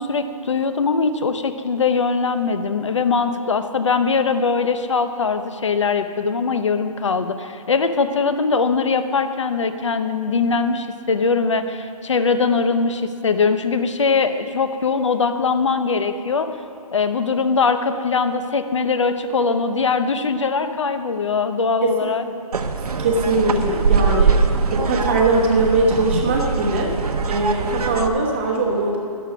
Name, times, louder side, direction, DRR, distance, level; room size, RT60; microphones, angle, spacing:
voice 1, 0.0-16.5 16.9-22.2, left 4 dB, 50° left, 9 dB, 0.8 m, -21 dB
sound 1, 22.5-28.1, right 5 dB, 80° right, 1.1 m, -22 dB
voice 2, 23.0-29.0, right 2 dB, 20° right, -1 dB, 1.1 m, -21 dB
12.0 x 11.0 x 6.0 m, 2.6 s
hypercardioid pair, 180°, 19 cm